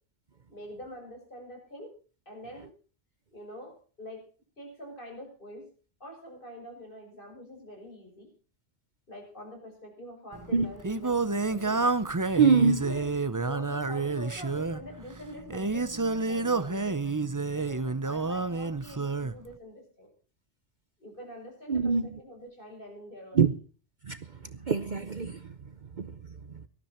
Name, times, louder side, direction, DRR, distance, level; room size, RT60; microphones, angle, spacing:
voice 1, 0.5-1.9 2.3-2.7 3.3-4.2 4.6-5.7 6.0-8.3 9.1-11.8 12.8-17.1 17.5-20.1 21.0-23.5 24.6-24.7, equal, 45° left, 7.2 m, -45 dB
Singing, 10.3-19.4, right 3 dB, 20° right, 0.6 m, -29 dB
voice 2, 12.4-12.9 21.7-22.2 23.3-23.5 24.0-26.2 26.5-26.6, right 5 dB, 45° right, 0.9 m, -25 dB
18.5 x 13.5 x 4.4 m
omnidirectional pair, 1.2 m